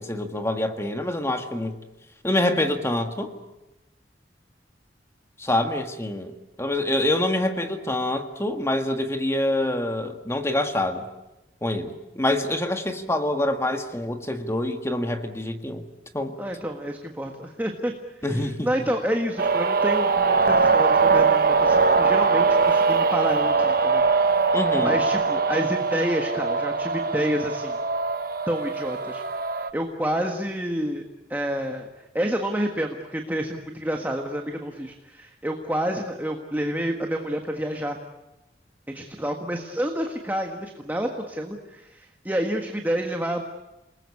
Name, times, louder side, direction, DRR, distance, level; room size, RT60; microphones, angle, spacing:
voice 1, 0.0-1.7 2.2-3.3 5.4-11.1 11.6-15.8 16.1-16.3 18.2-18.7 24.5-25.0, left 1 dB, 15° left, 6 dB, 1.7 m, -26 dB
voice 2, 16.4-17.9 18.3-24.4 24.8-27.8 28.5-29.2 29.5-31.0 31.3-31.9 32.1-38.0 38.9-43.4, equal, 10° right, 3 dB, 1.6 m, -29 dB
sound 1, 19.4-29.7, right 4 dB, 55° right, 1.1 m, -21 dB
29.0 x 20.0 x 8.5 m, 0.98 s
head